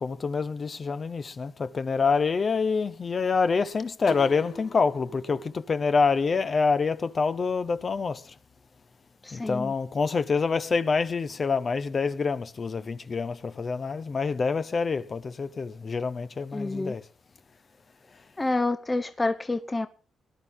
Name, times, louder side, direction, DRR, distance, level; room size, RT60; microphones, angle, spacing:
voice 1, 0.0-5.4 5.7-8.2 9.3-17.0, left 5 dB, 40° left, 1.2 m, -26 dB
sound 1, 4.1-6.9, left 2 dB, 85° left, 3.2 m, -43 dB
voice 2, 9.2-9.7 16.5-16.9 18.4-19.9, left 2 dB, 20° left, 0.9 m, -28 dB
19.5 x 11.5 x 3.8 m
cardioid pair, 80°, 0 cm